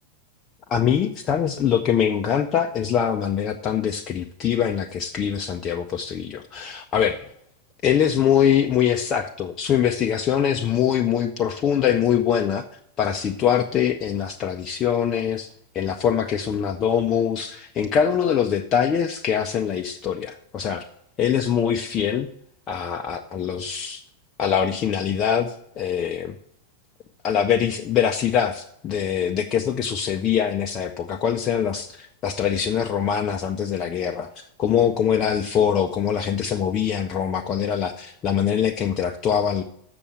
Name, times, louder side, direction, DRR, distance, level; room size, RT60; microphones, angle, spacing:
voice 1, 0.7-7.3 7.8-12.6 13.0-15.5 15.7-20.9 21.2-22.3 22.7-24.0 24.4-26.4 27.2-39.6, left 8 dB, 30° left, 4 dB, 0.6 m, -23 dB
6.9 x 6.9 x 7.2 m, 0.72 s
figure-of-eight pair, 90°, 0 cm